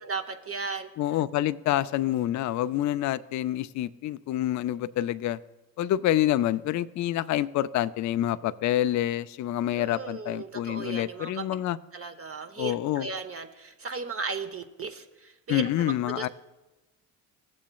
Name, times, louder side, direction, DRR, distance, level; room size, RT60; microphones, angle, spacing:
voice 1, 0.0-0.9 9.7-11.4 11.9-16.3, right 4 dB, 35° right, 6 dB, 0.9 m, -36 dB
voice 2, 1.0-5.4 5.8-11.8 12.6-13.1 15.5-16.3, left 13 dB, 45° left, 15 dB, 0.4 m, -27 dB
16.0 x 7.4 x 2.3 m, 1.1 s
hypercardioid pair, 50°, 42 cm